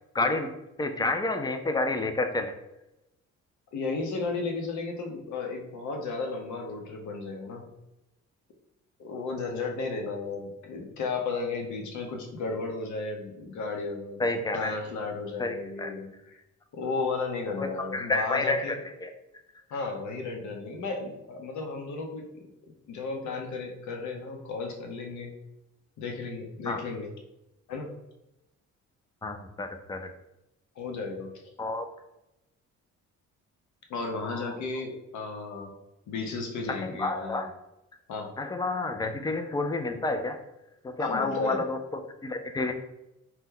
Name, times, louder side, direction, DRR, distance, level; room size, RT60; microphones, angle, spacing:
voice 1, 0.1-0.5 0.8-2.5 14.2-14.8 15.4-15.9 17.6-18.8 19.0-19.1 26.7-26.8 29.2-30.0 31.6-31.9 36.8-37.5 38.4-40.4 40.8-41.8 42.2-42.7, left 2 dB, 15° left, 7 dB, 0.3 m, -29 dB
voice 2, 3.7-7.7 9.0-14.2 14.5-16.4 16.7-18.8 19.7-22.3 22.9-25.3 26.0-27.1 27.7-27.9 30.8-31.5 33.9-35.7 36.1-37.5 38.1-38.3 41.0-41.6, left 4 dB, 70° left, 2 dB, 0.7 m, -34 dB
2.9 x 2.1 x 3.6 m, 0.90 s
cardioid pair, 90°, 30 cm